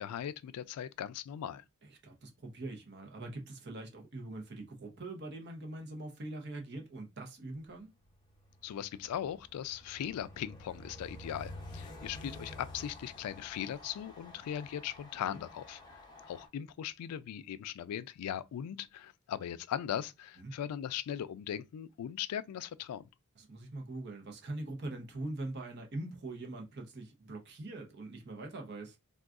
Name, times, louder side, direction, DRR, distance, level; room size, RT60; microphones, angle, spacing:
voice 1, 0.0-1.6 8.6-16.0 16.3-23.0, left 10 dB, 90° left, 0.3 m, -39 dB
voice 2, 1.8-7.9 14.4-14.5 15.2-15.4 20.4-20.5 23.4-29.0, right 2 dB, 50° right, 0.7 m, -43 dB
Train, 8.0-16.5, left 1 dB, 20° left, 0.6 m, -50 dB
3.6 x 2.3 x 2.4 m
head